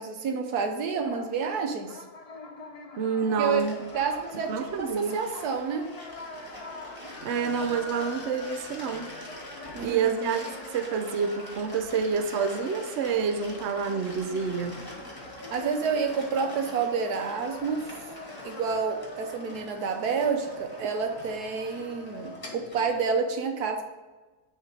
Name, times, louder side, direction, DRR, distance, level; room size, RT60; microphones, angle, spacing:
voice 1, 0.0-2.0 3.4-3.6 3.9-5.9 9.7-10.3 15.5-17.8 18.4-23.8, right 5 dB, 90° right, 5 dB, 1.4 m, -29 dB
sound 1, 1.0-18.6, left 3 dB, 40° left, 0.5 m, -46 dB
voice 2, 3.0-3.7 4.5-5.2 7.2-9.2 9.8-14.8, right 5 dB, 60° right, 7 dB, 0.8 m, -28 dB
sound 2, 3.6-23.1, left 1 dB, 15° left, 1.4 m, -44 dB
sound 3, 7.2-11.2, left 4 dB, 55° left, 1.1 m, -47 dB
9.0 x 3.4 x 4.8 m, 1.2 s
omnidirectional pair, 1.6 m